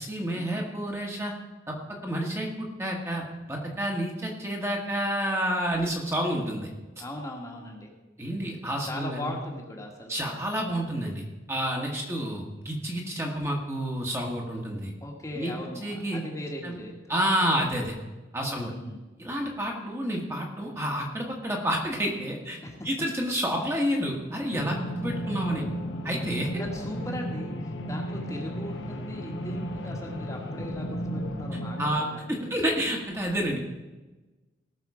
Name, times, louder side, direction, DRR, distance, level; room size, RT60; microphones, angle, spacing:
voice 1, 0.0-1.3 1.7-1.8 2.0-6.7 8.2-9.3 10.1-14.9 15.3-15.5 15.8-16.2 16.6-16.8 17.1-17.9 18.3-18.7 19.2-22.6 22.8-25.7 26.0-26.5 31.8-33.6, equal, 15° right, 0 dB, 1.5 m, -29 dB
voice 2, 7.0-7.9 8.9-10.5 15.0-17.1 18.4-19.0 22.6-22.9 24.8-25.2 26.6-32.5, left 1 dB, 15° left, 0 dB, 1.4 m, -39 dB
sound 1, 24.5-31.9, equal, 75° left, 1.2 m, -34 dB
19.0 x 6.3 x 4.9 m, 1.2 s
head